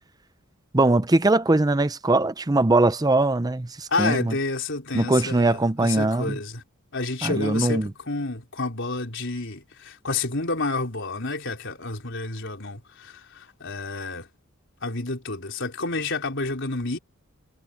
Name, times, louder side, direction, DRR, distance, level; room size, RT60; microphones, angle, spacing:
voice 1, 0.7-4.4 4.9-6.4 7.2-7.9, right 2 dB, 20° right, 0.6 m, -21 dB
voice 2, 3.9-6.6 6.9-14.3 14.8-17.0, left 3 dB, 60° left, 4.5 m, -29 dB
head